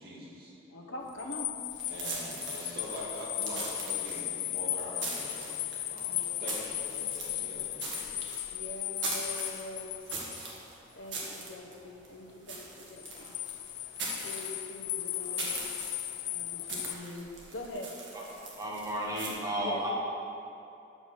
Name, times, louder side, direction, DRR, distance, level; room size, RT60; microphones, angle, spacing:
voice 1, 0.0-0.5 1.9-5.6 5.9-8.2, equal, 50° right, -6 dB, 2.2 m, -43 dB
voice 2, 0.7-1.6 6.1-6.4 8.5-10.0 11.0-13.3 14.2-15.6 16.3-17.9 19.6-19.8, left 1 dB, 90° left, 1 dB, 1.0 m, -43 dB
sound 1, 1.1-10.5 13.0-16.9, left 15 dB, 60° left, 0.3 m, -36 dB
sound 2, 1.7-19.3, right 3 dB, 70° right, 1.6 m, -41 dB
voice 3, 18.3-19.9, right 1 dB, 20° right, -4 dB, 1.3 m, -33 dB
7.3 x 5.8 x 6.1 m, 2.7 s
head